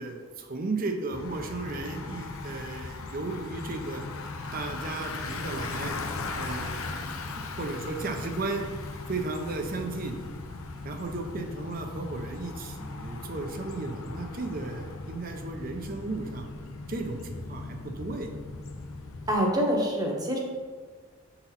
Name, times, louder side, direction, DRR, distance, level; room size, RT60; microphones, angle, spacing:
voice 1, 0.0-4.1 4.5-5.9 6.4-8.6 9.1-10.2 10.8-16.5 16.9-18.3, right 3 dB, 40° right, 4 dB, 0.6 m, -35 dB
Bicycle, 1.1-19.3, left 3 dB, 80° left, 0.6 m, -38 dB
voice 2, 19.3-20.4, equal, 20° right, -1 dB, 0.9 m, -25 dB
7.0 x 4.1 x 4.1 m, 1.5 s
head